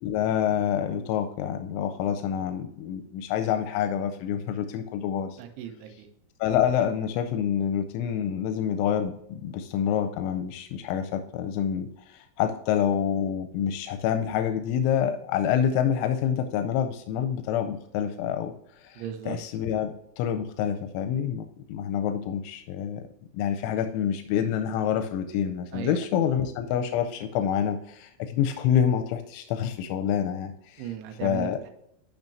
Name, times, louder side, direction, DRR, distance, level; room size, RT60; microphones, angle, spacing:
voice 1, 0.0-5.4 6.4-18.5 18.8-21.4 21.7-23.0 23.3-30.9 31.2-31.6, left 9 dB, 90° left, 7 dB, 3.1 m, -27 dB
voice 2, 5.4-6.1 18.4-18.5 19.0-19.4 25.7-26.0 30.8-31.7, right 10 dB, 80° right, 6 dB, 3.4 m, -36 dB
10.5 x 5.9 x 2.6 m, 0.77 s
omnidirectional pair, 5.4 m